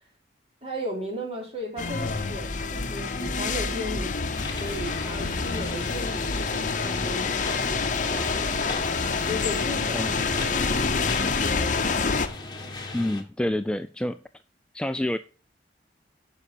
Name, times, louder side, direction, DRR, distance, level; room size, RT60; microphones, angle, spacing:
voice 1, 0.6-4.2 4.6-8.8 9.2-11.9, equal, 35° right, 3.2 m, -36 dB
sound 1, 1.8-12.3, left 4 dB, 45° left, 0.8 m, -27 dB
sound 2, 4.3-13.2, left 2 dB, 25° left, 1.5 m, -38 dB
voice 2, 12.9-14.2 14.7-15.2, left 1 dB, 5° left, 0.3 m, -27 dB
9.7 x 5.8 x 4.5 m
head